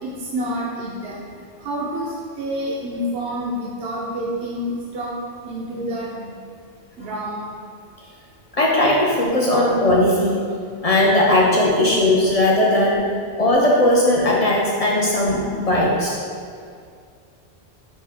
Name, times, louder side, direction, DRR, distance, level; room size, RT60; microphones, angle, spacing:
voice 1, 0.0-1.2 1.6-5.1 5.4-6.3 7.0-7.6, equal, 80° right, -4 dB, 0.8 m, -28 dB
voice 2, 8.5-10.5 10.8-13.0 13.4-16.2, left 1 dB, 50° left, -3 dB, 0.5 m, -18 dB
5.4 x 2.7 x 3.3 m, 2.2 s
omnidirectional pair, 1.1 m